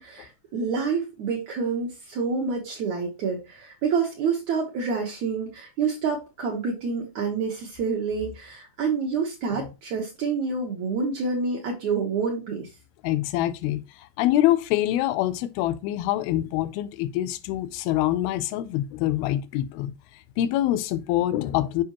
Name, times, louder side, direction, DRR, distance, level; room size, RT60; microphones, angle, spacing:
voice 1, 0.0-12.7, right 5 dB, 65° right, 1.9 m, -28 dB
voice 2, 13.0-13.8 14.2-19.9 20.4-21.8, left 14 dB, 90° left, 2.5 m, -25 dB
7.3 x 5.1 x 2.9 m
omnidirectional pair, 4.2 m